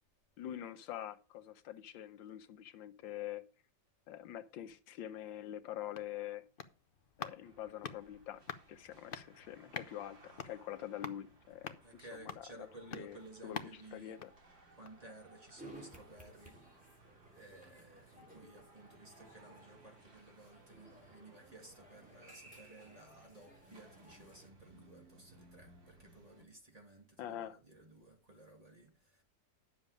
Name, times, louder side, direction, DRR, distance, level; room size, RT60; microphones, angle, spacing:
voice 1, 0.4-3.4 4.1-6.4 7.2-8.4 8.7-11.8 12.4-12.5 12.9-14.2 27.2-27.6, left 11 dB, 85° left, 1.5 m, -45 dB
sound 1, 5.6-15.1 15.5-15.6, left 6 dB, 60° left, 0.5 m, -49 dB
sound 2, 7.4-26.4, right 2 dB, 80° right, 3.9 m, -63 dB
voice 2, 11.8-14.2 14.7-29.2, right 2 dB, 20° right, 2.7 m, -56 dB
sound 3, 15.6-24.5, right 1 dB, 5° right, 3.1 m, -58 dB
10.0 x 7.2 x 5.1 m
omnidirectional pair, 2.0 m